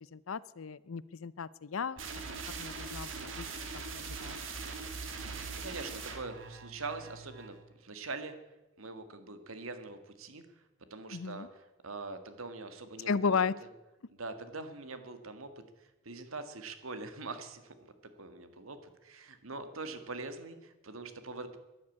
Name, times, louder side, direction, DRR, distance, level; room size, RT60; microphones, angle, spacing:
voice 1, 0.1-2.0 2.6-3.1 3.4-3.5 3.9-4.4 11.1-11.5 13.1-13.5, left 5 dB, 80° left, 20 dB, 0.6 m, -34 dB
sound 1, 2.0-7.6, right 4 dB, 70° right, 2.5 m, -41 dB
voice 2, 5.1-8.4 8.8-10.6 10.9-13.4 14.1-15.5 15.8-21.6, right 3 dB, 85° right, 9 dB, 1.8 m, -43 dB
13.0 x 11.5 x 8.6 m, 1.1 s
head